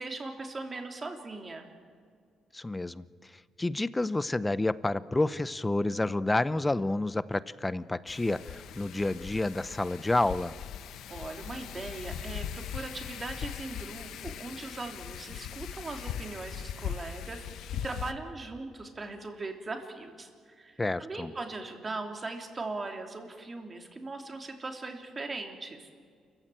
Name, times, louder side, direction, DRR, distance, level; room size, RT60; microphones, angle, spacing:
voice 1, 0.0-1.7 11.1-17.4 17.8-25.9, right 3 dB, 30° right, 4 dB, 3.1 m, -39 dB
voice 2, 2.5-3.1 3.6-10.6 20.8-21.3, left 2 dB, 15° left, 17 dB, 0.7 m, -29 dB
Wind, 8.1-18.1, left 9 dB, 80° left, 1.0 m, -40 dB
28.5 x 15.0 x 9.1 m, 2.1 s
cardioid pair, 95°, 0 cm